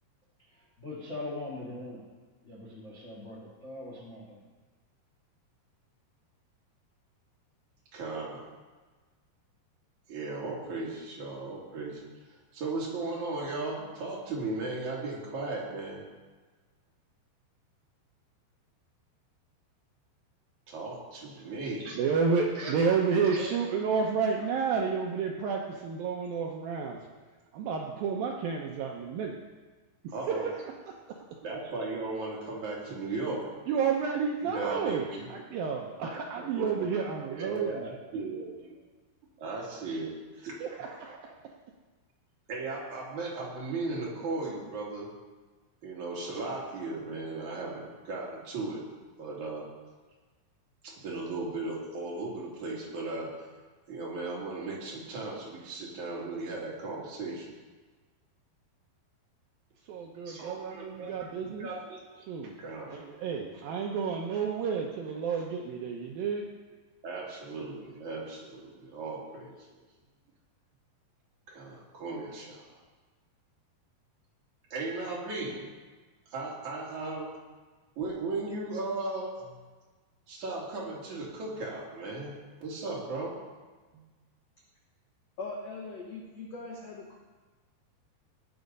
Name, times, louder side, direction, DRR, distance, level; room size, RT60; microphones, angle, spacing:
voice 1, 0.8-2.0 2.4-4.4, left 2 dB, 45° left, -3 dB, 0.9 m, -41 dB
voice 2, 7.9-8.5 10.1-16.0 20.7-22.0 22.5-22.8 23.2-23.5 30.1-30.5 31.4-33.5 34.4-35.3 36.4-36.9 37.3-38.8 39.4-40.6 42.5-45.1 45.8-48.8 49.2-49.7 50.8-53.3 53.9-57.5 60.2-61.3 61.6-62.0 62.6-63.0 67.0-69.6 71.5-72.7 74.7-75.7 76.3-77.3 78.0-79.6 80.3-82.3 82.6-83.4 83.9-84.0, right 3 dB, 45° right, -4 dB, 3.4 m, -36 dB
voice 3, 22.0-27.0 27.5-29.4 30.3-30.5 31.1-31.2 33.7-35.0 35.3-37.9 40.6-41.4 59.9-61.7 62.3-62.5 62.9-66.5, right 5 dB, 75° right, 0 dB, 2.2 m, -30 dB
voice 4, 85.4-87.2, left 3 dB, 75° left, -1 dB, 1.5 m, -40 dB
18.5 x 7.0 x 5.3 m, 1.3 s
omnidirectional pair, 5.0 m